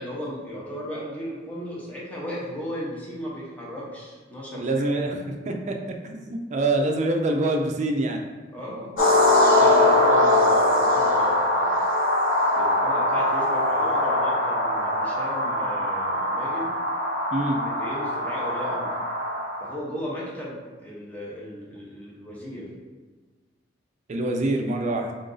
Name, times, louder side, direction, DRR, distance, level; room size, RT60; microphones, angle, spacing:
voice 1, 0.0-4.8 8.5-9.0 9.5-11.7 12.5-16.7 17.6-19.0 19.6-22.7, equal, 10° left, -6 dB, 0.8 m, -35 dB
voice 2, 4.6-5.2 5.5-8.2 9.6-9.9 17.3-17.6 24.1-25.1, right 2 dB, 40° right, 3 dB, 0.4 m, -25 dB
sound 1, 9.0-19.7, left 1 dB, 80° left, 0.9 m, -22 dB
3.7 x 2.6 x 3.8 m, 1.3 s
head